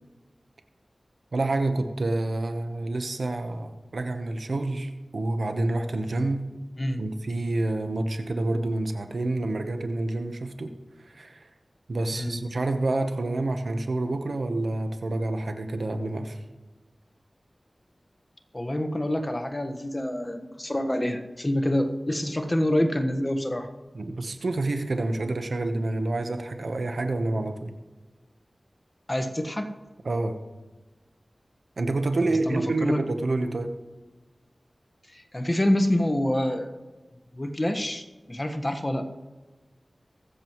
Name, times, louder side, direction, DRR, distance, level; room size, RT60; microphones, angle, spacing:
voice 1, 1.3-6.5 7.0-10.7 11.0-11.5 11.9-16.4 23.9-27.7 30.0-30.4 31.8-33.7, right 2 dB, 80° right, 7 dB, 1.0 m, -28 dB
voice 2, 12.1-12.4 18.5-23.7 29.1-29.7 32.2-33.0 35.1-36.7 37.3-39.0, left 1 dB, 30° left, 6 dB, 1.4 m, -27 dB
22.0 x 7.6 x 3.1 m, 1.2 s
cardioid pair, 40°, 0 cm